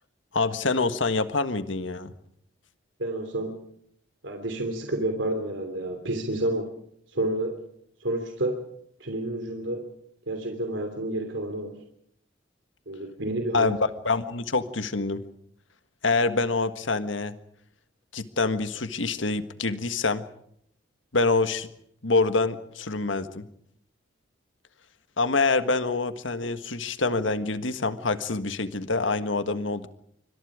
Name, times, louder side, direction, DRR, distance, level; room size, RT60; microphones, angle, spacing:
voice 1, 0.3-2.1 13.5-15.2 16.0-17.4 18.1-20.2 21.1-21.7 22.0-23.5 25.2-29.9, left 3 dB, 85° left, 10 dB, 1.6 m, -26 dB
voice 2, 3.0-3.5 4.2-6.7 7.1-7.6 8.0-8.5 9.0-9.8 10.3-11.8 12.9-13.7, right 1 dB, 75° right, 5 dB, 3.1 m, -29 dB
26.5 x 25.0 x 5.0 m, 0.69 s
head